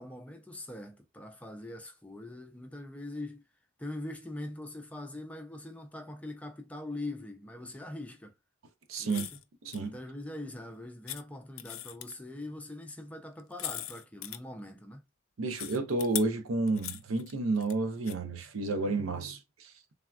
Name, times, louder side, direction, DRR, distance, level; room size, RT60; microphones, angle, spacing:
voice 1, 0.0-3.4 3.8-8.3 9.0-9.4 9.8-15.0, left 1 dB, 5° left, 0.4 m, -42 dB
sound 1, 8.9-9.4 9.7-9.8 11.1-11.2 11.6-12.2 13.4-14.4 15.6-16.2 16.7-17.7 18.1-18.2, left 14 dB, 80° left, 0.3 m, -39 dB
voice 2, 8.9-9.2 9.7-9.9 15.4-19.7, right 3 dB, 85° right, 0.6 m, -31 dB
3.4 x 2.3 x 2.3 m
head